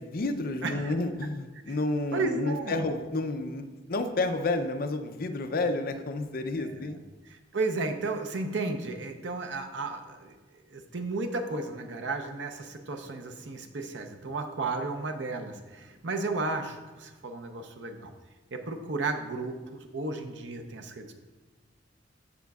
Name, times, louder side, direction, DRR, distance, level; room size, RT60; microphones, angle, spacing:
voice 1, 0.0-7.0, left 2 dB, 55° left, 8 dB, 0.5 m, -30 dB
voice 2, 0.6-0.9 1.7-1.8 2.1-2.8 6.6-7.0 7.3-10.3 10.7-18.1 18.5-21.1, right 3 dB, 70° right, 5 dB, 0.7 m, -33 dB
14.0 x 5.1 x 2.4 m, 1.2 s
head